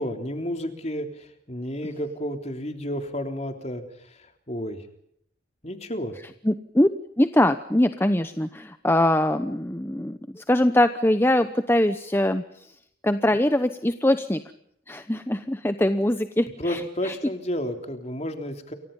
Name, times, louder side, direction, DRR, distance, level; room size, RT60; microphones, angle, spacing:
voice 1, 0.0-3.8 4.5-4.8 5.6-6.1 16.6-18.7, equal, 35° left, 6 dB, 3.5 m, -31 dB
voice 2, 6.4-6.9 7.2-12.4 13.0-14.4 14.9-17.1, left 1 dB, 15° left, 10 dB, 0.9 m, -22 dB
29.0 x 24.0 x 5.5 m, 0.70 s
head